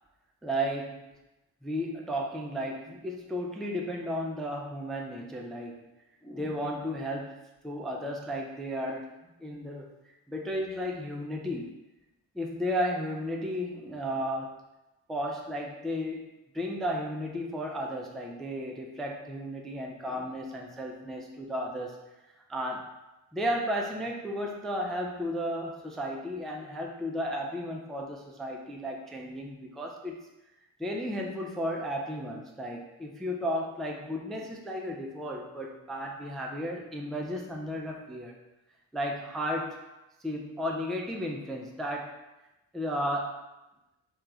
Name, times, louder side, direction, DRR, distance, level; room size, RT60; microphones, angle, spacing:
voice 1, 0.4-1.1 1.6-5.9 6.2-7.4 7.6-9.1 9.4-11.7 12.3-14.6 15.1-22.0 22.5-22.9 23.3-30.2 30.8-38.4 38.9-39.8 40.2-42.1 42.7-43.4, equal, ahead, 0 dB, 0.3 m, -34 dB
3.0 x 2.4 x 3.5 m, 0.99 s
supercardioid pair, 50°, 48 cm